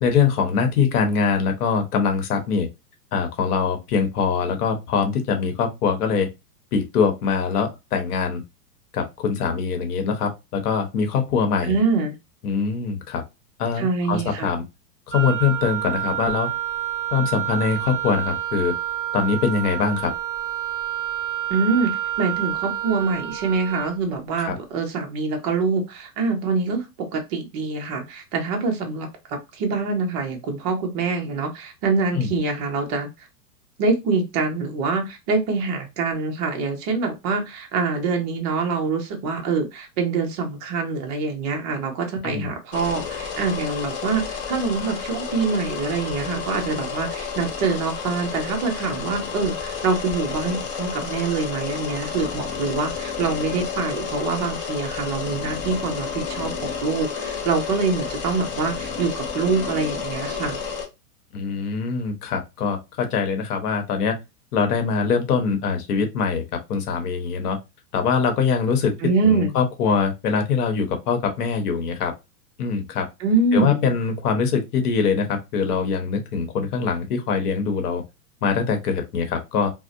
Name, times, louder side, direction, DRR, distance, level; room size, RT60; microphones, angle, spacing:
voice 1, 0.0-2.7 3.1-6.3 6.7-8.4 8.9-11.8 12.4-13.2 13.6-14.6 15.1-16.5 17.1-18.7 19.1-20.1 24.4-24.6 32.1-32.3 42.2-42.5 61.3-64.1 64.5-66.4 66.7-67.6 67.9-68.9 69.2-72.1 72.6-73.1 73.5-78.0 78.4-79.7, left 5 dB, 70° left, 5 dB, 0.9 m, -23 dB
voice 2, 11.6-12.1 13.8-14.5 21.5-33.1 33.8-60.6 69.0-69.6 73.2-73.9, right 4 dB, 25° right, 3 dB, 0.5 m, -25 dB
Wind instrument woodwind instrument, 15.1-24.0, right 12 dB, 5° left, 1.0 m, -28 dB
sound 1, 42.7-60.9, left 6 dB, 25° left, 0.5 m, -31 dB
2.7 x 2.0 x 2.5 m, 0.23 s
hypercardioid pair, 140°, 48 cm